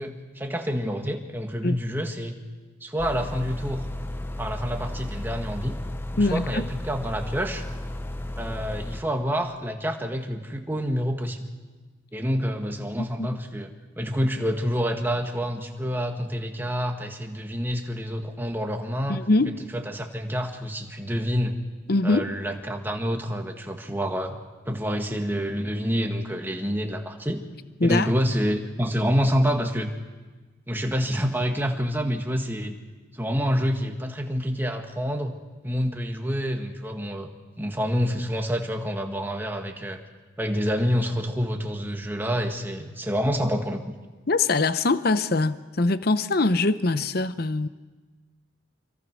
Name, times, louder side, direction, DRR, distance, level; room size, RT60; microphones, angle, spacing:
voice 1, 0.0-2.4 2.8-3.9 4.4-5.8 6.1-7.6 8.4-11.5 12.1-19.2 19.7-21.6 22.0-24.3 24.7-27.4 27.8-29.9 30.7-32.8 33.1-35.3 35.6-37.3 37.6-40.0 40.4-43.8, equal, 10° right, 3 dB, 1.8 m, -27 dB
sound 1, 3.0-9.0, left 1 dB, 10° left, 0.9 m, -34 dB
voice 2, 6.2-6.7 13.0-13.3 19.1-19.6 21.9-22.3 27.8-28.1 44.3-47.7, left 3 dB, 50° left, 13 dB, 0.8 m, -23 dB
26.5 x 24.5 x 6.3 m, 1.3 s
head